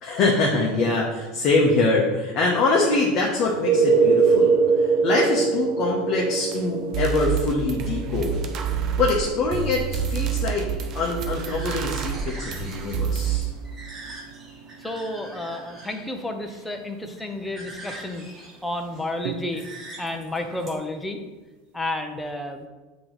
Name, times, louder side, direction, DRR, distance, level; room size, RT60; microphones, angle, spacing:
voice 1, 0.0-8.4 9.0-10.7 10.9-13.5, left 3 dB, 40° left, -2 dB, 0.9 m, -24 dB
sound 1, 3.4-15.0 19.3-19.4, right 5 dB, 85° right, 0.4 m, -25 dB
sound 2, 6.5-6.6 6.9-13.4, right 7 dB, 45° right, 0.6 m, -28 dB
sound 3, 10.7-20.7, right 2 dB, 20° right, 1.4 m, -44 dB
voice 2, 14.8-18.3 18.6-19.7 20.0-21.2 21.7-22.7, left 1 dB, 5° left, 4 dB, 0.6 m, -31 dB
8.3 x 3.0 x 3.9 m, 1.2 s
supercardioid pair, 145°, 0 cm